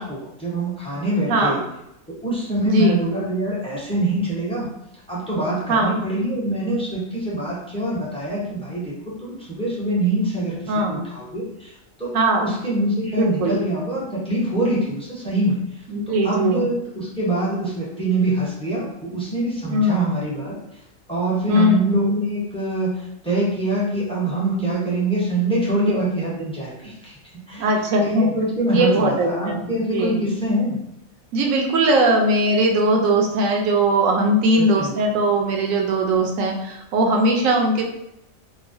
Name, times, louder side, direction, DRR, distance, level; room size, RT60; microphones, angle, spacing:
voice 1, 0.0-1.6 2.2-4.7 5.1-8.9 9.2-11.7 12.0-12.1 12.4-15.6 16.2-20.5 21.1-27.1 27.5-27.7 28.0-30.8 34.6-34.9, right 1 dB, 5° left, -7 dB, 0.5 m, -24 dB
voice 2, 2.6-3.0 5.7-5.9 10.7-11.0 12.1-12.5 13.1-13.6 15.9-16.6 19.7-20.1 21.5-22.0 25.7-26.0 27.6-28.3 28.7-29.7 29.9-30.2 31.3-37.8, right 1 dB, 75° right, 1 dB, 1.0 m, -20 dB
2.9 x 2.0 x 2.6 m, 0.82 s
omnidirectional pair, 1.4 m